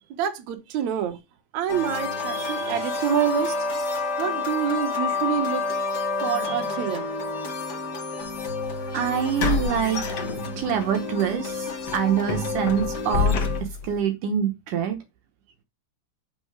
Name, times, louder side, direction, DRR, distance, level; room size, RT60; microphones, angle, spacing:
voice 1, 0.2-1.2 1.5-3.6 4.2-5.6 6.2-7.0, right 9 dB, 70° right, 1.7 m, -27 dB
sound 1, 1.7-13.6, left 3 dB, 45° left, 1.3 m, -29 dB
sound 2, 8.3-8.4 9.4-10.8 11.2-11.4 11.9-14.0, left 5 dB, 75° left, 1.4 m, -27 dB
voice 2, 8.9-15.0, right 8 dB, 85° right, 1.8 m, -26 dB
11.5 x 4.3 x 4.7 m
omnidirectional pair, 5.4 m